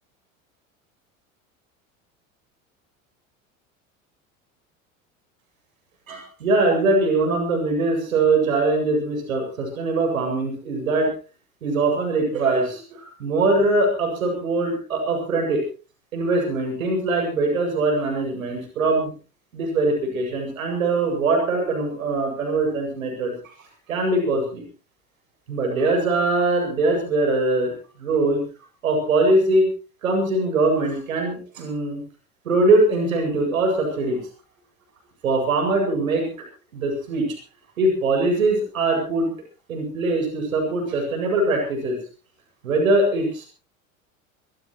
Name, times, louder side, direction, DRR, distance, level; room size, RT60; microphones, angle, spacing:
voice 1, 6.1-11.1 11.6-12.8 13.2-15.6 16.1-19.1 19.5-23.3 23.9-24.6 25.5-27.7 28.0-28.4 28.8-29.7 30.0-32.0 32.5-34.2 35.2-36.3 36.7-37.3 37.8-39.3 39.7-42.0 42.6-43.5, right 2 dB, 80° right, 2 dB, 7.7 m, -22 dB
24.5 x 16.5 x 3.2 m, 0.36 s
hypercardioid pair, 80°, 41 cm